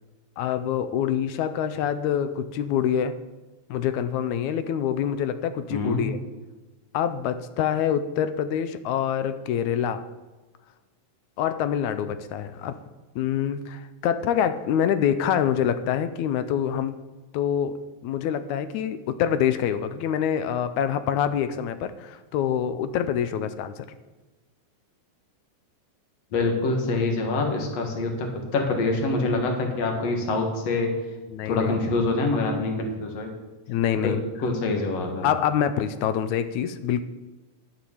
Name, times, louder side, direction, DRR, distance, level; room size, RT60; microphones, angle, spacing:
voice 1, 0.4-3.2 3.7-6.2 6.9-10.1 11.4-12.8 13.2-17.0 17.3-23.9 31.3-31.8 33.7-34.2 35.2-37.0, left 9 dB, 85° left, 12 dB, 2.0 m, -26 dB
voice 2, 5.7-6.0 26.3-30.9 31.5-33.3 34.0-34.1 34.4-35.3, left 3 dB, 60° left, 3 dB, 2.7 m, -25 dB
11.5 x 7.0 x 7.0 m, 1.2 s
omnidirectional pair, 3.4 m